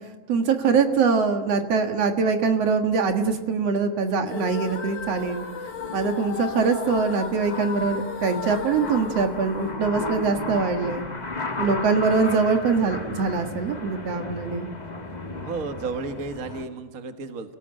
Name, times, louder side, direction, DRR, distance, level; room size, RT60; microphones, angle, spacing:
voice 1, 0.3-5.4 5.9-11.0 11.6-14.7, right 5 dB, 60° right, 6 dB, 2.6 m, -23 dB
sound 1, 4.2-10.4, left 7 dB, 85° left, 4.4 m, -35 dB
sound 2, 4.5-16.6, left 3 dB, 20° left, 1.2 m, -35 dB
voice 2, 15.4-17.6, right 4 dB, 40° right, 7 dB, 1.5 m, -32 dB
30.0 x 18.5 x 9.0 m, 1.2 s
omnidirectional pair, 3.3 m